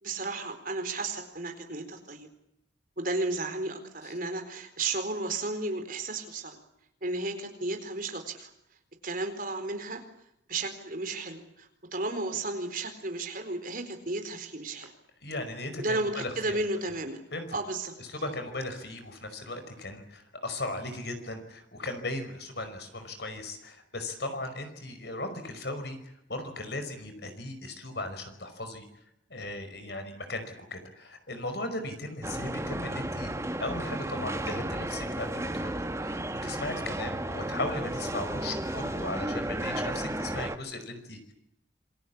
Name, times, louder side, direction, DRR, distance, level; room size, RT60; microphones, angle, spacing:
voice 1, 0.0-2.3 3.0-6.6 7.0-8.5 9.0-10.0 10.5-14.9 15.8-17.2 17.5-17.9, right 2 dB, 45° right, 6 dB, 4.3 m, -33 dB
voice 2, 15.2-16.6 17.3-17.5 18.1-26.0 26.3-28.8 29.3-33.3 33.6-41.3, left 2 dB, 60° left, 8 dB, 5.3 m, -37 dB
sound 1, 32.2-40.6, right 1 dB, 15° right, 1.3 m, -33 dB
27.5 x 23.0 x 8.6 m, 0.77 s
head